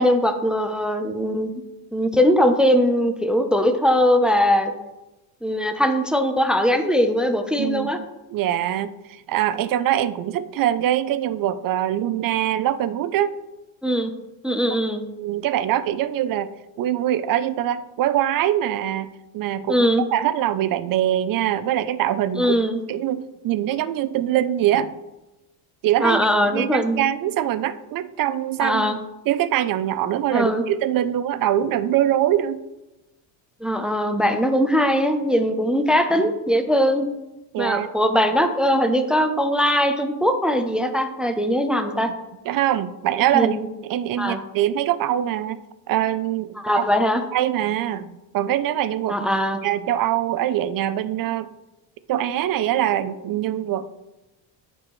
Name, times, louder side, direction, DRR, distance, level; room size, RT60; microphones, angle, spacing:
voice 1, 0.0-1.5 1.9-4.7 5.4-8.0 13.8-14.1 14.4-15.0 19.7-20.0 22.4-22.8 26.0-27.0 28.6-29.0 30.3-30.6 33.6-37.1 37.6-42.1 43.3-43.7 44.2-44.4 46.6-47.2 49.1-49.6, equal, ahead, 7 dB, 0.6 m, -20 dB
voice 2, 7.6-8.0 8.3-13.3 15.2-16.5 16.8-22.6 22.9-24.9 25.8-26.2 26.5-29.0 29.3-32.6 37.5-37.9 42.5-45.6 45.9-46.8 47.3-49.3 49.6-51.5 52.1-54.0, right 12 dB, 45° right, 14 dB, 0.5 m, -23 dB
12.5 x 4.6 x 3.1 m, 1.0 s
supercardioid pair, 100°, 46 cm